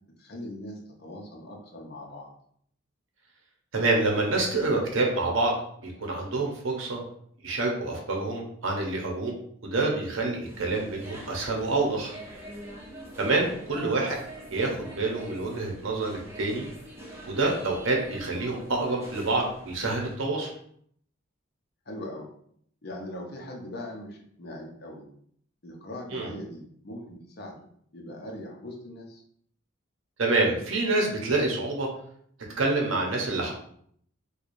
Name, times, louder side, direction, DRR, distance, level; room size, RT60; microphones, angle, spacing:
voice 1, 0.2-2.3 13.7-14.1 21.9-22.3 22.8-25.0 25.6-27.6 27.9-29.2, left 1 dB, 50° left, 0 dB, 0.7 m, -40 dB
voice 2, 3.7-7.0 7.4-9.3 9.6-12.1 13.2-14.2 14.5-16.7 17.3-20.5 26.1-26.3 30.2-31.9 32.6-33.5, right 2 dB, 65° right, 0 dB, 0.8 m, -27 dB
sound 1, 10.5-20.1, right 1 dB, 10° right, 0.8 m, -44 dB
4.6 x 2.3 x 2.6 m, 0.65 s
head